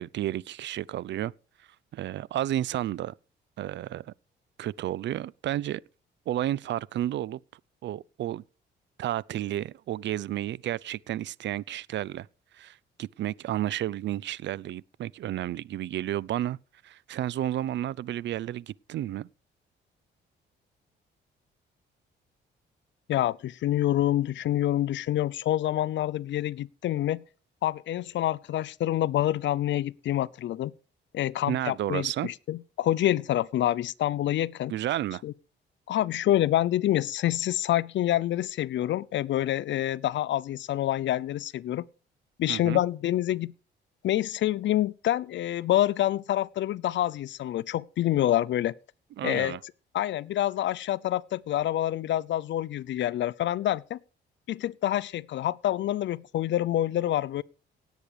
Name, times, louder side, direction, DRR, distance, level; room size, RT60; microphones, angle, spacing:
voice 1, 0.0-1.3 1.9-3.1 3.6-4.1 4.6-5.8 6.3-7.4 7.8-8.4 9.0-12.3 12.5-16.6 16.8-19.3 31.5-32.3 34.7-35.2 42.5-42.8 49.2-49.6, right 13 dB, 65° right, 0.5 m, -31 dB
voice 2, 23.1-27.2 27.6-30.7 31.1-34.7 35.2-35.3 35.9-41.9 42.4-43.5 44.0-48.7 49.2-49.6 49.9-54.0 54.5-57.4, left 13 dB, 70° left, 0.7 m, -27 dB
17.5 x 8.3 x 5.0 m
cardioid pair, 90°, 20 cm